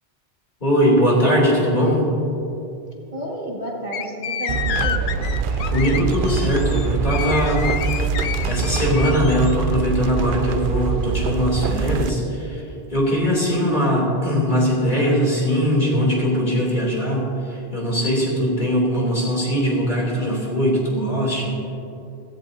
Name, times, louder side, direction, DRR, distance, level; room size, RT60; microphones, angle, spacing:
voice 1, 0.6-2.1 5.7-7.7 8.4-12.6 12.9-21.6, equal, 45° left, -4 dB, 3.1 m, -20 dB
voice 2, 3.1-5.1, right 1 dB, 40° right, -3 dB, 1.9 m, -31 dB
sound 1, 3.9-9.5, left 9 dB, 75° left, 0.8 m, -29 dB
sound 2, 4.5-12.1, right 5 dB, 60° right, 0.7 m, -24 dB
16.0 x 15.0 x 2.7 m, 2.8 s
omnidirectional pair, 1.1 m